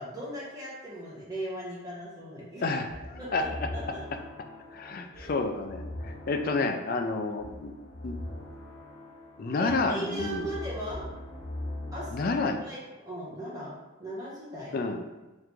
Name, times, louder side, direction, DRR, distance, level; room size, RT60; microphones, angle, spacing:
voice 1, 0.0-2.6 3.2-3.5 3.7-4.0 5.1-5.3 9.5-11.1 11.9-12.3 12.7-12.8 13.1-14.8, right 1 dB, 20° right, -7 dB, 1.1 m, -38 dB
voice 2, 2.6-3.7 4.7-7.7 8.0-8.2 9.4-10.5 12.1-12.6 14.7-15.0, left 3 dB, 45° left, 6 dB, 0.4 m, -30 dB
sound 1, 2.9-12.4, left 1 dB, 85° left, 0.9 m, -41 dB
3.7 x 3.1 x 3.4 m, 1.2 s
head